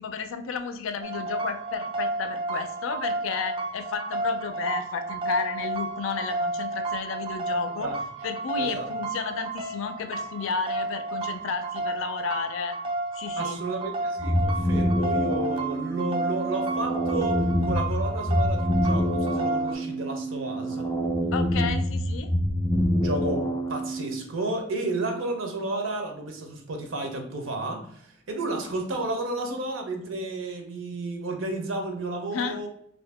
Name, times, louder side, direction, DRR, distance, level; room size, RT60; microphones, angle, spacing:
voice 1, 0.0-7.9 8.2-12.8 13.1-13.6 21.3-22.3 32.3-32.6, left 5 dB, 85° left, 9 dB, 0.4 m, -32 dB
sound 1, 1.0-19.7, right 2 dB, 25° right, 0.3 m, -32 dB
voice 2, 8.6-8.9 13.4-20.9 23.0-32.7, right 2 dB, 85° right, 4 dB, 0.7 m, -32 dB
sound 2, 14.2-24.2, equal, 20° left, 0.6 m, -26 dB
2.7 x 2.6 x 3.3 m, 0.71 s
head